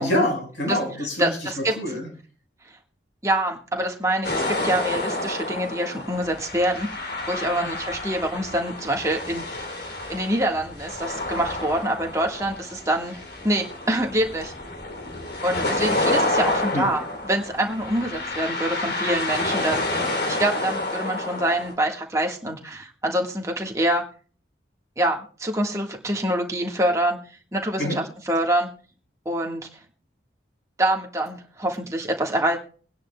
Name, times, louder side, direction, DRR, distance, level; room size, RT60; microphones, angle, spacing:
voice 1, 0.0-2.1 16.7-16.9 27.8-28.0, left 1 dB, 70° left, 2 dB, 5.1 m, -26 dB
voice 2, 1.2-1.8 3.2-9.7 10.1-14.5 15.4-24.0 25.0-27.2 27.5-28.7 29.2-29.7 30.8-32.6, right 1 dB, 15° right, 1 dB, 1.5 m, -25 dB
sound 1, 4.2-21.7, left 2 dB, 55° left, 3.1 m, -29 dB
23.5 x 10.5 x 2.3 m, 0.40 s
head